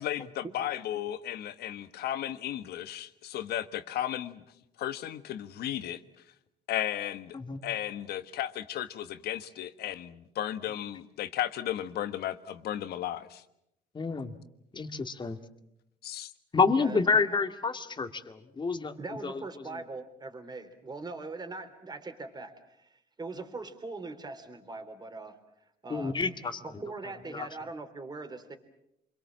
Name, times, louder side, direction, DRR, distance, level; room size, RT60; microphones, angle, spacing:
voice 1, 0.0-4.4 4.8-6.0 6.7-7.4 7.6-13.4 16.0-16.3, left 12 dB, 70° left, 11 dB, 1.5 m, -34 dB
voice 2, 7.3-7.6 13.9-14.3 14.7-15.4 16.5-19.0 19.2-19.4 25.9-26.6 27.3-27.5, left 4 dB, 25° left, 8 dB, 2.1 m, -28 dB
voice 3, 19.0-25.4 25.8-26.2 26.6-28.6, right 3 dB, 25° right, 6 dB, 3.5 m, -41 dB
28.0 x 22.5 x 7.5 m, 0.81 s
cardioid pair, 110°, 17 cm